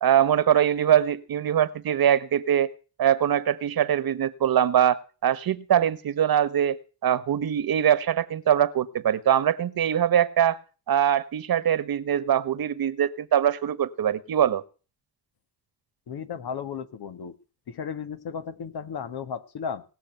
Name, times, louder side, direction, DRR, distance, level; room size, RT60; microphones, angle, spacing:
voice 1, 0.0-2.7 3.0-10.6 10.9-14.6, right 9 dB, 65° right, 16 dB, 1.3 m, -23 dB
voice 2, 16.1-17.4 17.7-19.8, left 7 dB, 75° left, 10 dB, 1.7 m, -34 dB
19.5 x 6.6 x 9.1 m, 0.36 s
cardioid pair, 65°, 39 cm